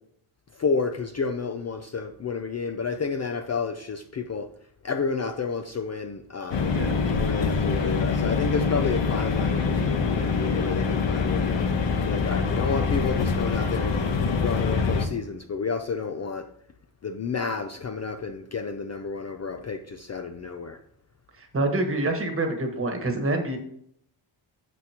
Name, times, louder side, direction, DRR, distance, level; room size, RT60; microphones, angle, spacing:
voice 1, 0.5-4.5 4.8-11.6 12.0-14.0 14.4-16.5 17.0-20.8, left 5 dB, 35° left, 6 dB, 0.5 m, -30 dB
sound 1, 6.5-15.1, left 5 dB, 60° left, 1.1 m, -25 dB
voice 2, 21.4-23.6, right 2 dB, 25° right, 4 dB, 1.3 m, -26 dB
9.2 x 7.9 x 2.9 m, 0.66 s
wide cardioid pair, 180°, 50 cm